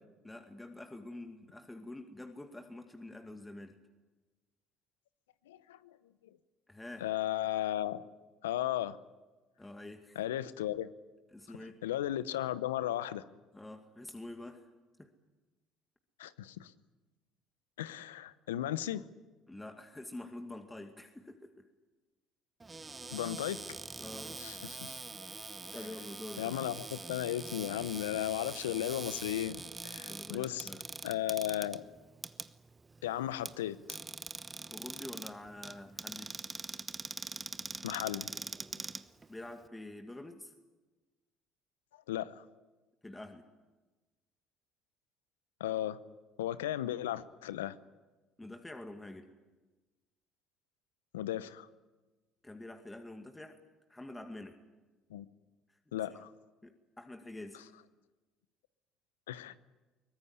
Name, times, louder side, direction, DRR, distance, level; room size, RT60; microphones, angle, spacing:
voice 1, 0.2-3.7 6.7-7.1 9.6-10.2 11.3-11.8 13.5-14.7 15.0-15.1 19.5-21.7 24.0-24.4 25.7-26.5 30.0-30.8 34.7-36.4 39.3-40.5 43.0-43.5 48.4-49.3 52.4-53.6 53.9-54.6 56.1-56.3 56.6-57.6, left 1 dB, 15° left, 5 dB, 2.2 m, -47 dB
voice 2, 5.5-6.0 7.0-8.0 8.4-9.0 10.2-10.9 11.6-13.2 16.2-16.7 17.8-19.1 23.1-23.6 24.4-25.0 26.4-30.7 31.0-31.8 33.0-34.0 37.8-38.3 42.1-42.4 45.6-46.0 46.4-47.8 51.1-51.7 55.1-55.2 55.9-56.3 59.3-59.6, left 12 dB, 85° left, 15 dB, 0.8 m, -35 dB
Cupboard open or close, 22.6-39.7, right 3 dB, 25° right, 1.1 m, -44 dB
23.0 x 19.5 x 9.6 m, 1.2 s
hypercardioid pair, 60°, 0 cm